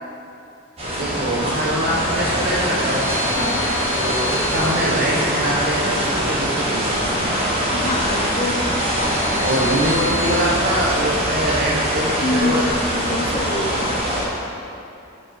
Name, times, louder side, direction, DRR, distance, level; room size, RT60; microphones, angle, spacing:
sound 1, 0.8-14.2, equal, 30° right, 1.6 m, -22 dB
voice 1, 1.0-3.1 4.0-7.1 9.4-12.6 13.0-13.1, right 1 dB, 45° right, -5 dB, 0.8 m, -23 dB
sound 2, 2.8-5.3 8.3-10.4, left 2 dB, 75° left, 1.4 m, -33 dB
voice 2, 3.3-3.7 7.7-8.7 12.2-14.1, left 2 dB, 25° left, 3 dB, 0.5 m, -26 dB
7.3 x 5.9 x 6.2 m, 2.7 s
head